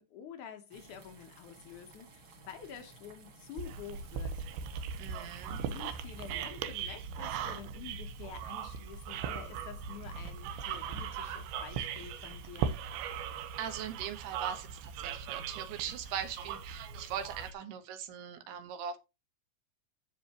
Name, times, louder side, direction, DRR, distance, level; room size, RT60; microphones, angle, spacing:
voice 1, 0.0-4.4 5.0-12.8, left 8 dB, 75° left, 1.8 m, -49 dB
sound 1, 0.7-6.5, right 3 dB, 45° right, 1.8 m, -56 dB
sound 2, 3.6-17.5, right 7 dB, 90° right, 3.2 m, -39 dB
voice 2, 5.0-5.6 13.6-19.0, right 8 dB, 75° right, 3.0 m, -40 dB
15.0 x 5.5 x 2.9 m
omnidirectional pair, 5.0 m